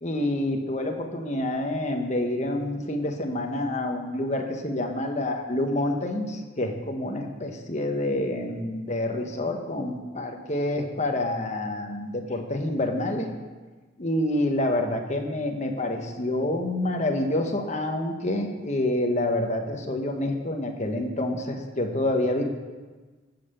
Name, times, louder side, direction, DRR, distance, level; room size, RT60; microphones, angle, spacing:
voice 1, 0.0-13.3 14.0-22.4, left 1 dB, 35° left, 3 dB, 1.3 m, -27 dB
15.0 x 5.8 x 6.9 m, 1.3 s
head